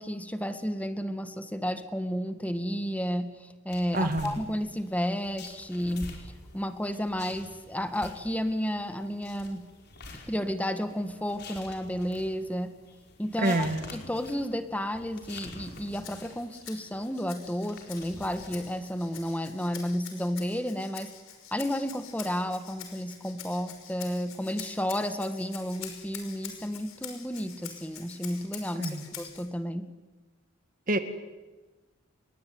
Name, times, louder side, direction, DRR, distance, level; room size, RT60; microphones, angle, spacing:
voice 1, 0.0-6.1 6.5-9.6 10.3-12.7 13.2-13.7 13.9-21.1 21.5-29.8, equal, 5° left, 9 dB, 1.6 m, -32 dB
sound 1, 3.7-19.3, left 2 dB, 50° left, 5.2 m, -48 dB
voice 2, 3.9-4.4 13.4-13.8 28.8-29.1 30.9-31.0, right 1 dB, 40° right, 9 dB, 2.1 m, -27 dB
Rattle (instrument), 15.6-29.5, left 9 dB, 80° left, 5.7 m, -46 dB
27.5 x 22.5 x 9.5 m, 1.2 s
head